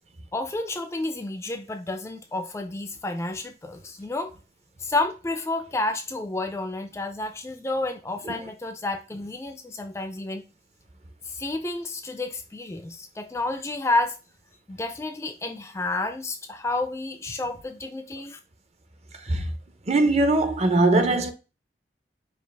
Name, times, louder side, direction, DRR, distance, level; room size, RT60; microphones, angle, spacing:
voice 1, 0.3-4.3 4.8-10.4 11.3-14.2 14.7-18.4, left 2 dB, 15° left, 0.3 m, -30 dB
voice 2, 19.9-21.3, right 2 dB, 35° right, 0.5 m, -20 dB
5.1 x 2.4 x 3.3 m
head